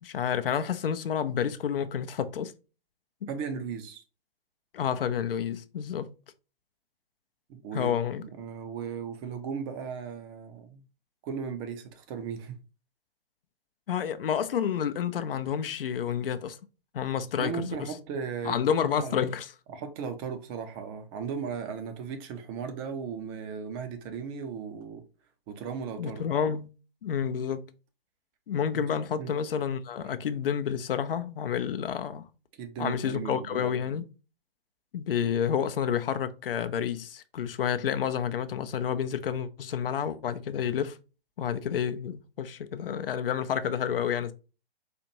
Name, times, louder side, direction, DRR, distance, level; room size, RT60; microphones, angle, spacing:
voice 1, 0.0-2.5 3.2-3.3 4.7-6.1 7.7-8.2 13.9-16.6 16.9-17.9 18.4-19.5 26.0-26.7 27.0-27.6 28.5-32.3 32.8-34.0 34.9-41.0 41.4-44.3, left 8 dB, 65° left, 0.5 m, -29 dB
voice 2, 3.3-4.0 7.5-10.8 11.2-12.6 17.4-19.3 19.7-25.0 25.5-26.2 28.7-28.8 29.2-29.3 32.6-33.7, right 6 dB, 25° right, 0.5 m, -36 dB
4.2 x 2.5 x 2.8 m
figure-of-eight pair, 125°, 30 cm